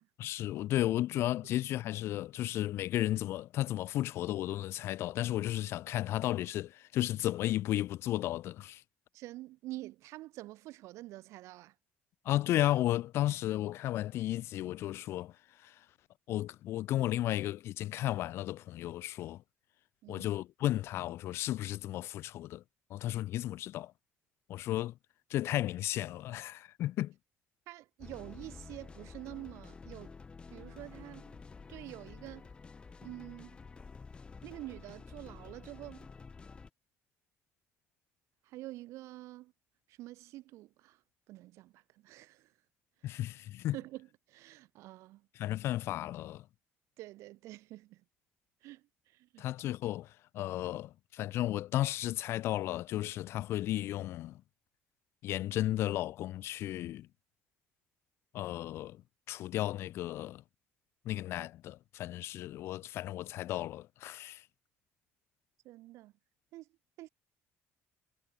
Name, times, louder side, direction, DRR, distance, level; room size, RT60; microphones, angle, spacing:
voice 1, 0.2-8.8 12.3-15.3 15.6-15.8 16.3-19.4 20.1-22.6 22.9-23.9 24.5-24.9 25.3-27.1 43.0-43.8 45.4-46.4 49.4-54.4 55.2-57.1 58.3-59.0 59.3-60.4 61.1-64.4, left 14 dB, 55° left, 0.3 m, -34 dB
voice 2, 9.1-11.7 20.0-20.3 27.7-30.1 30.5-31.4 31.7-32.5 33.0-33.6 34.4-36.1 38.4-39.5 39.9-41.0 41.3-42.5 43.7-45.3 47.0-48.0 48.6-49.4 65.6-66.1 66.5-66.7 67.0-67.1, right 17 dB, 75° right, 1.9 m, -47 dB
sound 1, 28.0-36.7, left 4 dB, 20° left, 0.9 m, -50 dB
cardioid pair, 150°, 5 cm